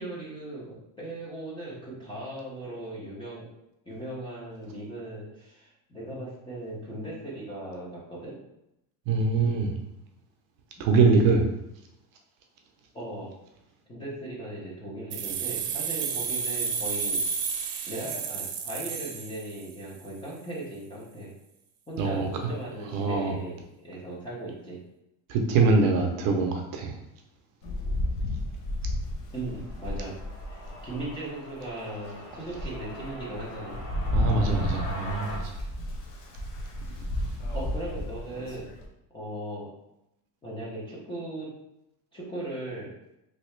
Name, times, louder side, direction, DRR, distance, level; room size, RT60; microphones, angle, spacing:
voice 1, 0.0-3.5 3.9-8.4 10.8-10.9 12.9-13.3 13.9-17.2 17.8-21.3 21.9-24.8 29.3-30.2 30.5-33.8 37.5-38.7 39.1-39.7 40.4-41.5 42.1-42.9, right 1 dB, 10° left, -7 dB, 0.4 m, -38 dB
voice 2, 9.1-9.7 10.8-11.5 22.0-22.3 22.9-23.3 25.3-26.9 34.1-35.4, right 4 dB, 50° right, 2 dB, 0.5 m, -23 dB
sound 1, 15.1-19.9, right 6 dB, 85° right, 0.7 m, -31 dB
Rain, 27.6-31.1 31.7-31.8 32.3-38.9, left 1 dB, 75° left, 0.9 m, -32 dB
sound 2, 29.5-35.4, left 1 dB, 40° left, 0.9 m, -42 dB
3.2 x 2.8 x 3.1 m, 0.85 s
cardioid pair, 180°, 45 cm